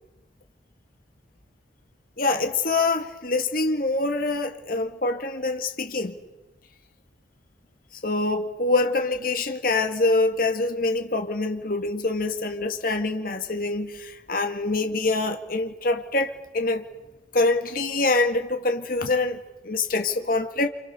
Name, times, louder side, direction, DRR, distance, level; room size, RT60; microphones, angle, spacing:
voice 1, 2.2-6.2 8.0-16.8 17.3-20.7, left 3 dB, 50° left, 1.8 m, -25 dB
29.0 x 27.5 x 6.8 m
head